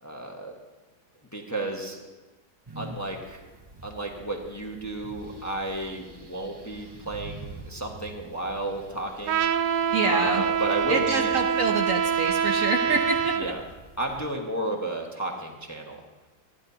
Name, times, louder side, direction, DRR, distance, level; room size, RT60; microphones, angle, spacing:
voice 1, 0.0-0.5 1.3-2.0 2.7-3.4 3.8-9.5 10.0-11.3 13.4-13.6 14.0-16.0, right 1 dB, 10° left, 1 dB, 1.2 m, -32 dB
sound 1, 2.7-14.3, right 2 dB, 40° right, 0.3 m, -47 dB
Trumpet, 9.3-13.5, right 8 dB, 85° right, 1.3 m, -25 dB
voice 2, 9.9-10.4 10.9-13.5, right 3 dB, 55° right, 3 dB, 1.1 m, -27 dB
27.5 x 11.0 x 2.8 m, 1.2 s
omnidirectional pair, 1.9 m